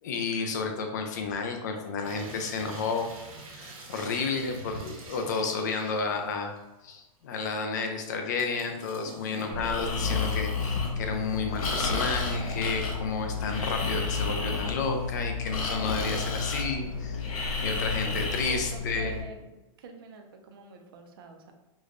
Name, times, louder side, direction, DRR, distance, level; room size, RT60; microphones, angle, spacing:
voice 1, 0.0-3.1 3.5-6.5 6.8-17.3 17.6-19.2, left 4 dB, 30° left, 4 dB, 0.4 m, -31 dB
sound 1, 2.0-6.8 7.2-7.3 8.2-10.4 10.9-12.2 12.6-13.8 14.2-14.7 15.0-15.1, right 2 dB, 80° right, 1.0 m, -48 dB
voice 2, 9.3-9.9 18.0-19.5 19.8-21.5, right 4 dB, 40° right, 4 dB, 0.4 m, -45 dB
Breathing, 9.5-19.2, left 4 dB, 85° left, 0.8 m, -31 dB
4.9 x 2.1 x 2.4 m, 1.0 s
hypercardioid pair, 175°, 18 cm